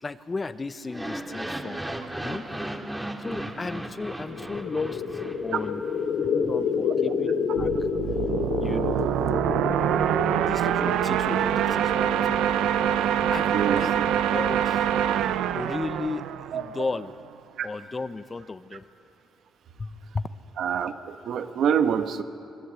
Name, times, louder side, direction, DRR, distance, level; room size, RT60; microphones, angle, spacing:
voice 1, 0.0-1.8 2.2-2.5 3.2-5.8 6.2-7.9 8.6-9.1 10.4-12.4 13.3-13.9 14.3-14.9 15.5-17.1 17.6-18.9 19.8-20.3, left 3 dB, 25° left, 12 dB, 0.9 m, -34 dB
sound 1, 0.8-6.0, right 1 dB, 10° right, 2.3 m, -35 dB
sound 2, 4.2-15.7, left 6 dB, 80° left, 3.5 m, -30 dB
sound 3, 7.6-17.1, right 10 dB, 85° right, 0.7 m, -25 dB
voice 2, 13.5-14.0 15.0-15.1 16.5-16.6 17.6-17.7 20.6-22.2, right 8 dB, 70° right, 8 dB, 1.3 m, -26 dB
25.0 x 20.0 x 8.3 m, 2.7 s
cardioid pair, 90°, 0 cm